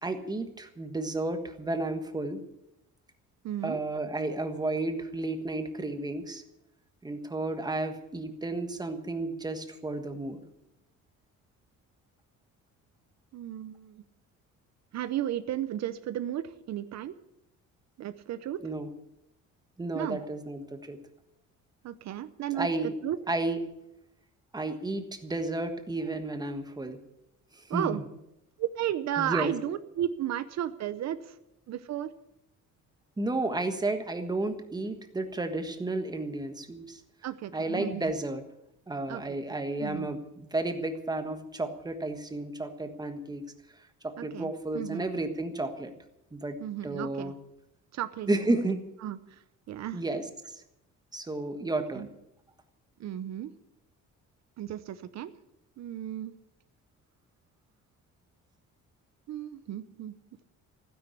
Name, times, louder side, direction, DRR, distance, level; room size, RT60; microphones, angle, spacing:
voice 1, 0.0-2.4 3.6-6.4 7.0-10.4 18.6-18.9 19.8-21.0 22.5-22.9 23.3-23.6 24.5-27.0 27.5-28.0 29.2-29.5 33.2-37.0 37.5-38.4 38.9-43.5 44.0-45.9 46.3-46.6 46.8-47.3 48.3-48.8 49.9-50.6 51.1-52.1, right 2 dB, 10° right, 7 dB, 1.4 m, -32 dB
voice 2, 3.4-3.8 13.3-14.0 14.9-17.2 18.0-18.6 19.9-20.2 21.8-23.2 27.7-28.0 28.6-31.4 31.7-32.1 37.2-38.1 39.1-39.2 39.8-40.1 44.2-45.0 46.6-47.3 47.9-48.4 49.0-50.0 51.9-52.1 53.0-53.5 54.6-55.3 55.8-56.3 59.3-60.1, right 11 dB, 55° right, 12 dB, 0.8 m, -34 dB
15.5 x 10.0 x 8.4 m, 0.83 s
cardioid pair, 170°, 32 cm